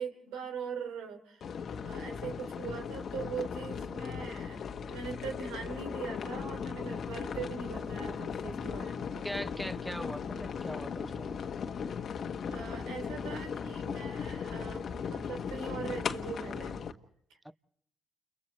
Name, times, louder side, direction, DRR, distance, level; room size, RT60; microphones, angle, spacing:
voice 1, 0.0-1.4 1.8-9.3 12.5-16.8, right 6 dB, 85° right, 3.2 m, -41 dB
sound 1, 1.4-16.9, left 6 dB, 60° left, 1.5 m, -37 dB
voice 2, 9.2-11.3 17.4-17.5, equal, 5° right, 0.9 m, -40 dB
30.0 x 30.0 x 3.2 m
supercardioid pair, 65°, 0 cm